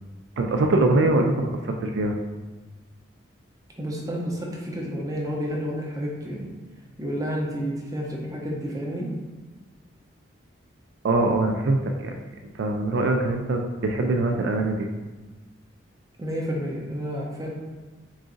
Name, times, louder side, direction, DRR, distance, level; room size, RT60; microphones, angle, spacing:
voice 1, 0.4-2.2 11.0-12.1 12.5-14.9, right 2 dB, 65° right, 3 dB, 0.3 m, -23 dB
voice 2, 3.8-6.5 7.0-9.1 16.2-17.5, equal, 15° right, -3 dB, 0.6 m, -30 dB
3.8 x 2.5 x 3.7 m, 1.3 s
head